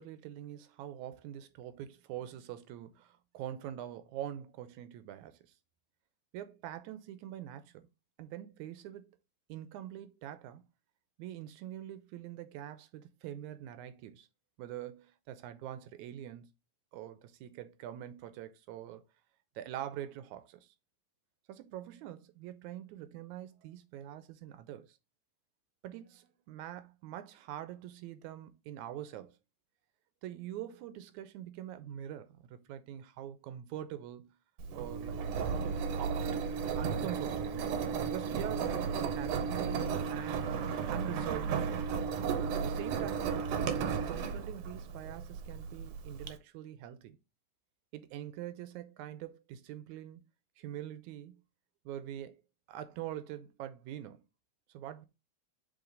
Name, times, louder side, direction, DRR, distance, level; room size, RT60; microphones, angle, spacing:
voice 1, 0.0-5.5 6.3-7.9 8.2-9.2 9.5-10.6 11.2-14.3 14.6-16.5 16.9-19.0 19.6-20.7 21.5-25.0 25.8-29.4 30.2-34.4 34.7-35.3 36.0-36.3 36.7-40.4 40.9-42.0 42.5-43.4 43.6-47.2 47.9-50.2 50.6-51.4 51.9-52.4 52.7-54.2 54.7-55.1, right 12 dB, 85° right, 2.1 m, -44 dB
Engine, 34.6-46.3, right 6 dB, 70° right, 1.7 m, -34 dB
7.0 x 3.6 x 3.8 m
omnidirectional pair, 3.3 m